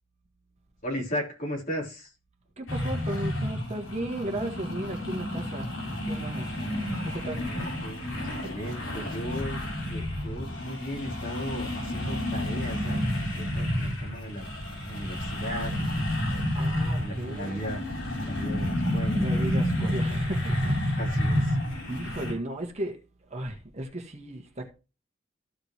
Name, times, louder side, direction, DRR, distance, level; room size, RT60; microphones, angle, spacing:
voice 1, 0.8-2.1 7.4-9.6 9.9-13.0 13.3-14.5 14.9-16.0 16.6-17.9 18.2-19.5 21.0-21.6, equal, 40° left, 3.4 m, -36 dB
voice 2, 2.6-6.6 7.0-7.4 16.5-17.6 19.2-21.0 21.9-23.0 23.2-24.7, right 1 dB, 35° right, 1.6 m, -35 dB
sound 1, 2.7-22.3, left 1 dB, 80° left, 4.6 m, -30 dB
14.0 x 5.2 x 3.0 m
head